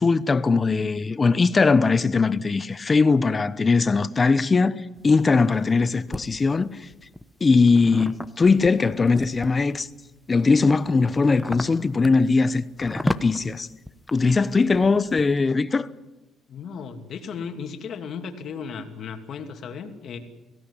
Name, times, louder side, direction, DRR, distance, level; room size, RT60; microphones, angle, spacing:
voice 1, 0.0-6.9 7.4-9.9 10.3-13.7 14.1-15.9, left 4 dB, 25° left, 0.8 m, -20 dB
sound 1, 5.0-6.2 6.9-9.8 10.3-15.3, left 1 dB, 5° left, 1.0 m, -33 dB
voice 2, 16.5-20.2, left 6 dB, 55° left, 2.7 m, -35 dB
23.0 x 17.0 x 9.9 m
cardioid pair, 130°, 0 cm